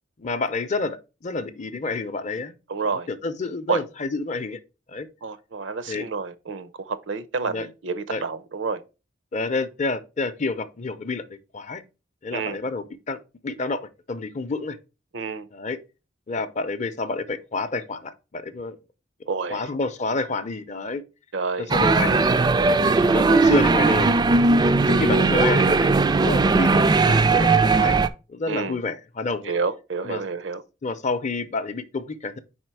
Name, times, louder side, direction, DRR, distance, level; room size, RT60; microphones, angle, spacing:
voice 1, 0.2-2.5 2.8-4.6 4.9-5.1 5.9-6.0 7.5-7.7 8.1-8.2 9.3-11.8 12.2-13.8 14.1-14.8 15.5-15.8 16.3-18.8 19.5-21.0 21.7-22.2 23.1-24.1 24.9-26.8 27.3-28.0 28.3-29.5 30.0-30.2 30.8-32.4, left 3 dB, 40° left, 0.6 m, -28 dB
voice 2, 2.7-3.1 3.7-3.8 5.2-8.8 12.3-12.6 15.1-15.5 19.3-19.7 21.3-21.7 27.1-27.4 28.5-28.8 29.4-30.6, right 4 dB, 75° right, 0.6 m, -29 dB
sound 1, 21.7-28.1, right 3 dB, 20° right, 0.3 m, -18 dB
4.8 x 4.3 x 4.6 m
head